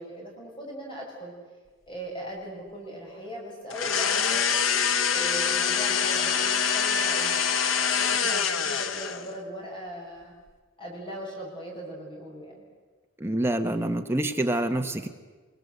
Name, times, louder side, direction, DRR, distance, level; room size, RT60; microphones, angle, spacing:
voice 1, 0.0-1.3 1.9-4.5 5.1-10.3 10.8-12.6, equal, 25° left, -2 dB, 5.9 m, -39 dB
sound 1, 3.7-9.3, left 7 dB, 85° left, 1.3 m, -25 dB
voice 2, 13.2-15.1, right 1 dB, 10° right, 5 dB, 1.4 m, -26 dB
25.0 x 23.0 x 8.1 m, 1.4 s
head